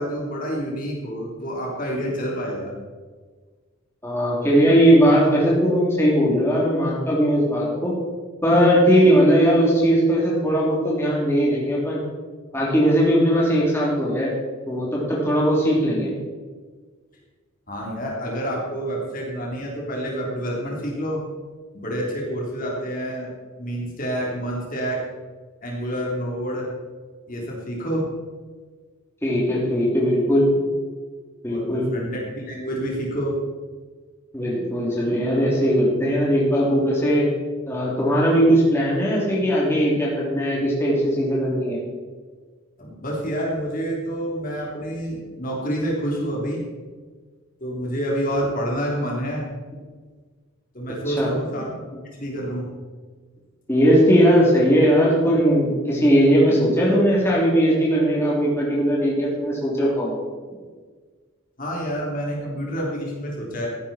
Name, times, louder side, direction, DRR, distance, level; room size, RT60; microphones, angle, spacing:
voice 1, 0.0-2.7 17.7-21.2 21.7-23.3 23.6-25.0 25.6-26.7 27.3-28.1 31.5-33.4 42.8-46.6 47.6-49.5 50.7-51.7 52.1-52.7 61.6-63.7, equal, 40° left, -2 dB, 3.4 m, -28 dB
voice 2, 4.0-7.9 8.4-12.0 12.5-14.3 14.7-16.1 29.2-30.5 31.4-31.9 34.3-37.3 37.7-41.8 51.1-51.3 53.7-60.1, equal, 10° left, -5 dB, 3.2 m, -19 dB
14.5 x 11.0 x 4.4 m, 1.5 s
head